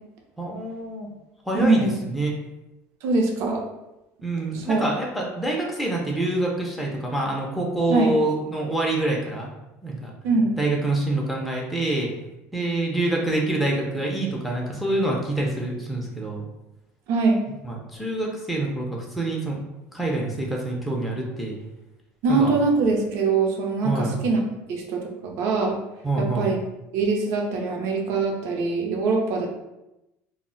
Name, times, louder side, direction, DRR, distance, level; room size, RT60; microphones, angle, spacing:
voice 1, 0.4-1.1 1.4-2.3 4.2-9.5 9.8-10.1 10.6-12.1 12.5-16.4 17.6-19.6 19.9-21.6 22.3-22.5 23.8-24.2 26.0-26.5, right 2 dB, ahead, -3 dB, 0.4 m, -26 dB
voice 2, 1.5-1.9 3.0-3.6 4.5-4.8 7.9-8.2 10.2-10.6 17.1-17.4 22.2-24.4 24.7-25.8 26.2-26.6 26.9-29.5, right 3 dB, 60° right, 1 dB, 0.5 m, -23 dB
2.0 x 2.0 x 3.7 m, 0.94 s
cardioid pair, 155°, 6 cm